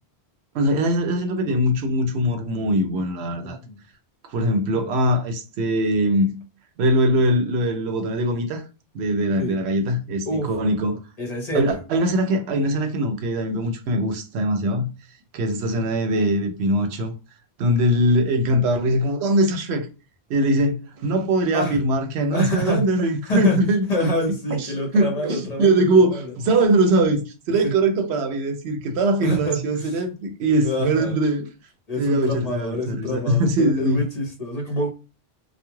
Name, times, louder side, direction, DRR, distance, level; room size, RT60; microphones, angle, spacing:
voice 1, 0.5-3.6 4.2-6.3 6.8-8.6 8.9-11.0 11.5-14.9 15.3-17.1 17.6-19.9 20.3-24.1 24.5-24.7 24.9-31.5 31.9-34.0, right 1 dB, 85° right, 0.8 m, -21 dB
voice 2, 3.4-3.8 9.4-9.5 10.3-10.5 11.2-11.8 21.5-21.8 22.3-22.9 23.2-23.6 23.9-25.8 26.1-26.2 27.6-27.7 29.2-30.0 30.6-31.1 31.9-34.9, equal, 45° left, 0.7 m, -26 dB
2.3 x 2.1 x 3.0 m
omnidirectional pair, 1.1 m